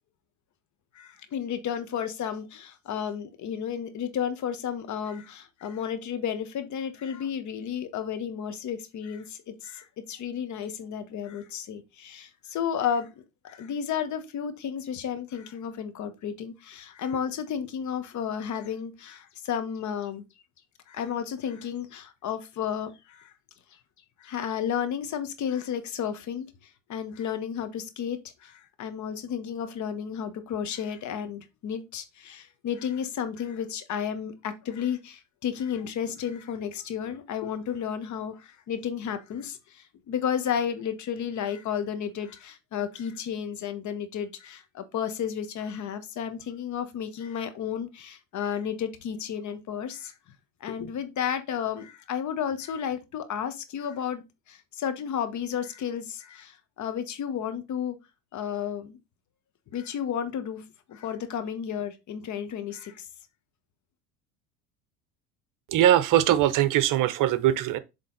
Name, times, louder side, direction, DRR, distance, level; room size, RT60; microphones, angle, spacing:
voice 1, 0.9-13.1 13.4-20.2 20.9-23.3 24.2-26.5 26.9-50.1 50.6-58.0 58.3-59.0 59.7-63.1, left 8 dB, 45° left, 1.2 m, -32 dB
voice 2, 65.7-67.8, right 12 dB, 50° right, 0.8 m, -21 dB
7.5 x 3.5 x 3.9 m
hypercardioid pair, 80°, 41 cm